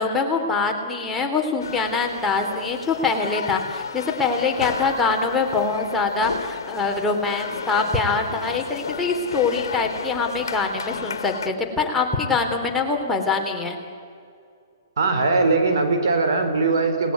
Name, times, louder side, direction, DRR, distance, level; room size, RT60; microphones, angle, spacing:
voice 1, 0.0-13.8, left 4 dB, 10° left, 1 dB, 3.0 m, -24 dB
sound 1, 1.6-11.5, left 6 dB, 80° left, 1.7 m, -33 dB
voice 2, 15.0-17.1, right 3 dB, 70° right, 6 dB, 4.4 m, -20 dB
29.5 x 19.5 x 9.5 m, 2.4 s
hypercardioid pair, 145°, 2 cm